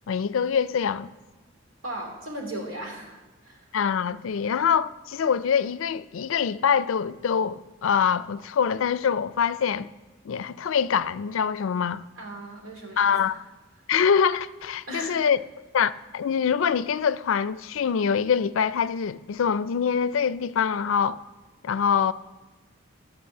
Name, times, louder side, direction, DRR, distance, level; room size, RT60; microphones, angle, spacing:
voice 1, 0.1-1.1 3.7-9.9 10.2-12.0 13.0-13.4 13.9-15.4 15.7-21.2 21.6-22.1, left 7 dB, 85° left, 0.4 m, -24 dB
voice 2, 1.8-3.6 12.2-13.2 14.9-15.2, right 1 dB, 90° right, 2.7 m, -37 dB
11.0 x 6.0 x 7.6 m
head